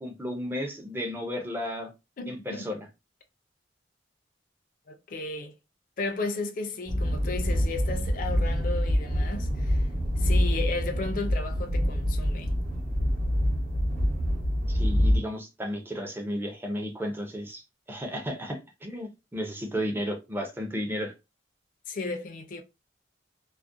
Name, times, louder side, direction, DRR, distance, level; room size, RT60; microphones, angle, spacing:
voice 1, 0.0-1.9 2.3-2.8 14.7-17.6 17.9-21.1, equal, 10° right, 0.5 m, -33 dB
voice 2, 2.2-2.7 4.9-5.5 6.0-9.9 10.2-12.5 21.9-22.6, left 3 dB, 50° left, 0.4 m, -34 dB
sound 1, 6.9-15.2, equal, 50° right, 0.8 m, -26 dB
2.4 x 2.1 x 2.5 m
head